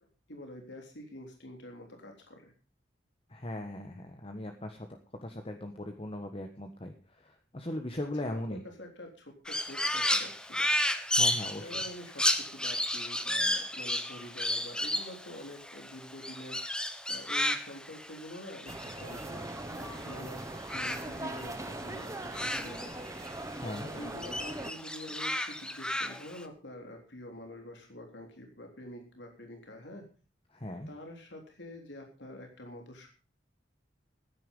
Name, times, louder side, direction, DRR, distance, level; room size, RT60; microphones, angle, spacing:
voice 1, 0.3-2.5 8.2-10.7 11.6-23.0 23.8-30.1 30.9-33.1, left 1 dB, 80° left, 3 dB, 3.5 m, -47 dB
voice 2, 3.3-4.9 5.2-8.6 11.1-11.8 23.6-23.9 30.5-30.9, left 1 dB, 35° left, 5 dB, 1.4 m, -39 dB
Crow, 9.5-20.2 20.4-23.4 23.7-26.4, left 1 dB, 5° left, 1.1 m, -33 dB
sound 1, 18.7-24.7, right 2 dB, 20° right, 1.2 m, -40 dB
15.0 x 9.7 x 5.4 m, 0.35 s
head